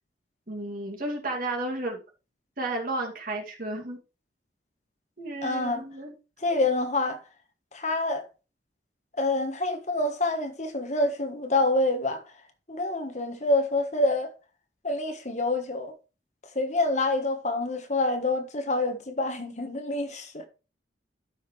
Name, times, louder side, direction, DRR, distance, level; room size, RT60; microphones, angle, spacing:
voice 1, 0.5-2.0 2.6-4.0 5.2-6.1, right 2 dB, 50° right, 2.5 m, -32 dB
voice 2, 5.4-5.8 6.4-7.2 7.7-8.2 9.2-12.2 12.7-14.3 14.8-15.9 16.5-20.5, left 2 dB, 40° left, 1.4 m, -27 dB
13.0 x 5.9 x 3.3 m
head